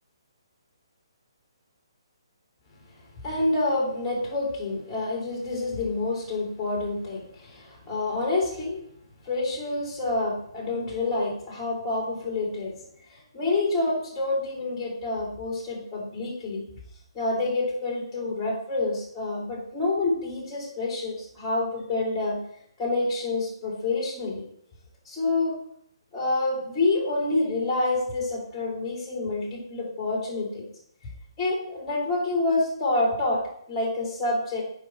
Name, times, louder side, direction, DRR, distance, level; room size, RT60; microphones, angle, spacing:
voice 1, 3.2-8.8 9.2-12.7 13.1-16.7 17.1-22.4 22.8-24.4 25.0-25.6 26.1-30.6 31.4-34.6, left 2 dB, 15° left, -3 dB, 3.1 m, -27 dB
7.2 x 5.3 x 4.5 m, 0.66 s
figure-of-eight pair, 140°, 3 cm